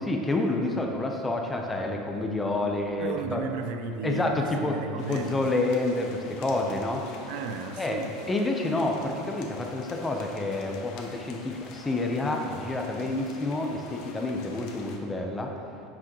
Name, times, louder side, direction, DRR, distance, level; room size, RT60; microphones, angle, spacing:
voice 1, 0.0-3.4 4.0-7.1 7.8-8.0 8.3-15.5, left 2 dB, 10° left, 2 dB, 0.7 m, -28 dB
voice 2, 3.0-5.5 7.3-8.3, right 5 dB, 70° right, 6 dB, 0.6 m, -34 dB
sound 1, 5.0-15.0, left 4 dB, 55° left, 0.9 m, -47 dB
9.6 x 6.2 x 3.0 m, 2.6 s
supercardioid pair, 145°, 0 cm